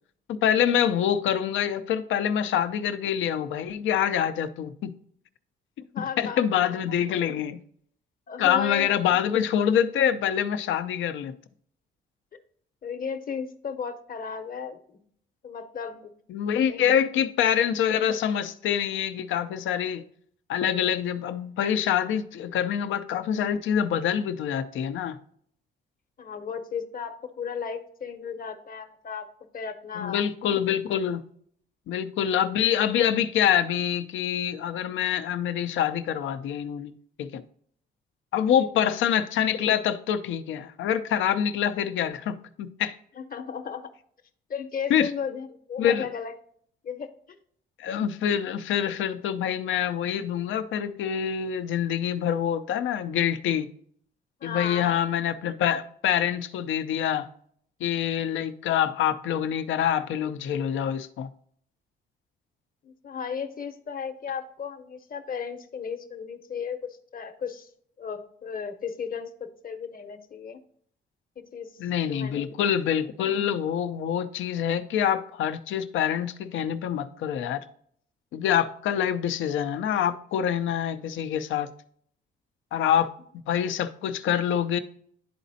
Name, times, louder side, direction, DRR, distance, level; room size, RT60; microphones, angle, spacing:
voice 1, 0.3-4.9 6.0-7.6 8.4-11.3 16.3-20.1 20.5-25.2 30.0-31.2 31.9-36.9 37.2-37.4 38.3-43.0 44.9-45.1 45.8-46.1 47.8-53.7 54.4-57.3 57.8-61.3 71.8-77.6 78.3-81.7 82.7-83.1 83.5-84.8, left 9 dB, 80° left, 0.6 m, -26 dB
voice 2, 5.9-6.7 8.3-8.9 12.3-12.4 12.8-15.0 15.4-16.1 16.7-17.0 26.2-29.3 29.5-30.2 38.6-38.7 43.2-43.9 44.5-46.3 46.8-47.4 54.4-55.1 62.8-67.7 68.0-69.3 69.6-70.6 71.4-71.8 72.1-72.6, left 6 dB, 45° left, 0.9 m, -35 dB
11.0 x 4.1 x 2.7 m
cardioid pair, 90°, 20 cm